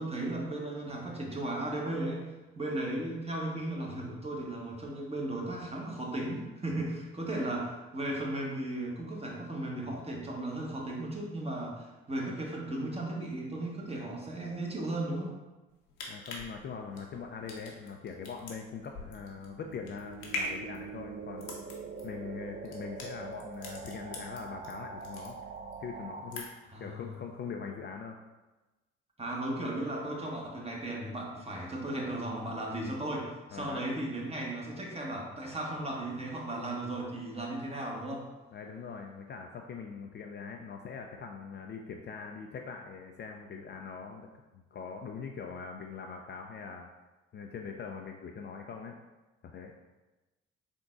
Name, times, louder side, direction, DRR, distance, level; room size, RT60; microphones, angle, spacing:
voice 1, 0.0-2.3 2.6-15.3 26.7-27.0 29.2-38.3, right 1 dB, 20° right, -1 dB, 1.0 m, -36 dB
sound 1, 15.7-24.7 25.0-25.8 26.1-26.8 27.1-27.2, left 2 dB, 75° left, 0.8 m, -42 dB
voice 2, 16.1-21.6 22.0-25.4 25.8-26.5 26.8-28.2 33.5-33.8 38.5-44.3 44.5-46.9 47.3-49.0 49.4-49.7, left 5 dB, 35° left, 3 dB, 0.4 m, -42 dB
sound 2, 17.4-26.5, right 5 dB, 40° right, 0.4 m, -45 dB
3.8 x 3.6 x 2.4 m, 1.1 s
hypercardioid pair, 50°, 30 cm